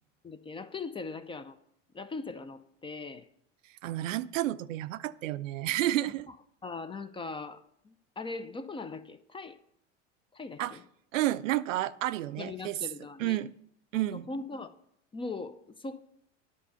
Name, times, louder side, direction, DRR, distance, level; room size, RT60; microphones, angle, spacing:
voice 1, 0.2-1.6 1.9-3.3 6.6-9.6 10.3-10.8 12.4-13.4 13.9-14.7 15.1-16.0, left 3 dB, 15° left, 13 dB, 0.4 m, -40 dB
voice 2, 3.8-6.3 10.6-10.8 11.1-12.8 13.2-13.5 13.9-14.3, right 14 dB, 80° right, 16 dB, 0.5 m, -30 dB
10.0 x 5.2 x 6.8 m, 0.72 s
hypercardioid pair, 90°, 38 cm